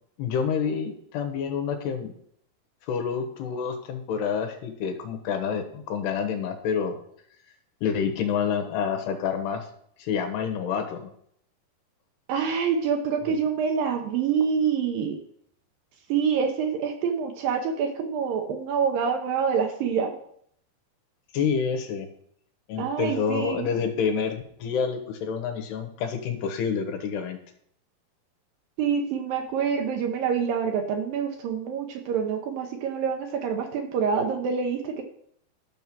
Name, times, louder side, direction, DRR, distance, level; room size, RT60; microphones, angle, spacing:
voice 1, 0.2-2.1 2.9-7.0 7.8-9.7 10.0-11.1 13.3-13.4 21.3-22.1 22.7-27.4, left 6 dB, 85° left, 6 dB, 3.3 m, -28 dB
voice 2, 12.3-15.2 16.1-20.2 22.8-23.7 28.8-35.0, right 6 dB, 70° right, 4 dB, 2.4 m, -26 dB
12.0 x 6.1 x 5.6 m, 0.67 s
omnidirectional pair, 4.7 m